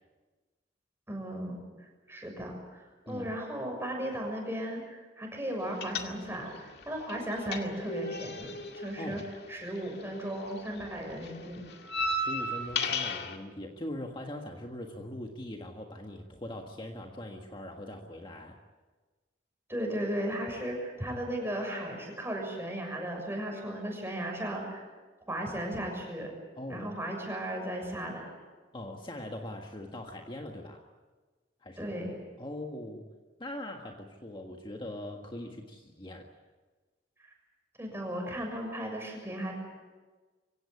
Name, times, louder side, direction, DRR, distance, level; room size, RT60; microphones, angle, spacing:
voice 1, 1.1-1.6 2.1-2.8 3.0-9.2 9.5-11.7 19.7-24.8 25.3-26.3 26.7-28.2 31.8-32.2 37.8-39.5, right 1 dB, 15° right, 1 dB, 6.8 m, -36 dB
sound 1, 5.8-6.6 6.8-10.2 10.5-13.4, left 2 dB, 65° left, 2.1 m, -34 dB
voice 2, 8.9-9.2 12.1-18.6 26.6-26.9 28.7-30.9 31.6-32.0 32.4-33.1 33.4-36.3, left 1 dB, 25° left, 2 dB, 1.6 m, -41 dB
24.5 x 17.5 x 9.8 m, 1.3 s
head